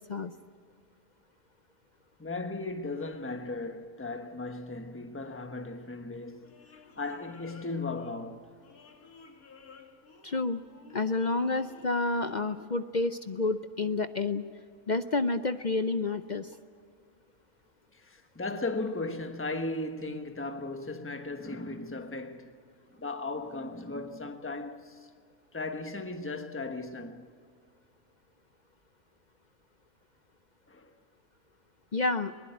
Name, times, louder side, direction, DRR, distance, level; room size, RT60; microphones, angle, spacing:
voice 1, 2.2-6.5 7.0-8.5 17.9-22.5 23.0-25.1 25.5-27.3 30.7-30.9, left 2 dB, 10° left, 1.1 m, -36 dB
sound 1, 5.8-12.6, left 4 dB, 80° left, 2.1 m, -54 dB
voice 2, 10.2-10.6 10.9-14.4 14.9-16.5 31.9-32.3, left 3 dB, 50° left, 0.5 m, -29 dB
21.5 x 20.5 x 9.0 m
omnidirectional pair, 1.5 m